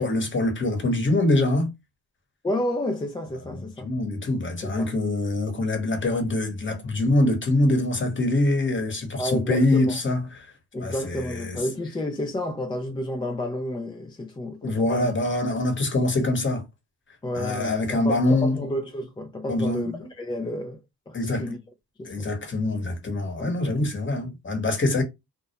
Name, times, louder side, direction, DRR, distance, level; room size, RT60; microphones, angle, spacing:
voice 1, 0.0-1.7 3.5-10.5 10.8-11.6 14.6-16.6 17.3-18.6 19.5-20.1 21.1-21.5 22.0-25.0, left 2 dB, 30° left, 1.0 m, -24 dB
voice 2, 2.4-3.9 4.6-4.9 9.2-10.0 10.7-15.1 17.2-21.6 22.0-22.3 23.4-23.5, left 1 dB, 15° left, 0.4 m, -31 dB
2.3 x 2.1 x 2.8 m
cardioid pair, 80°, 39 cm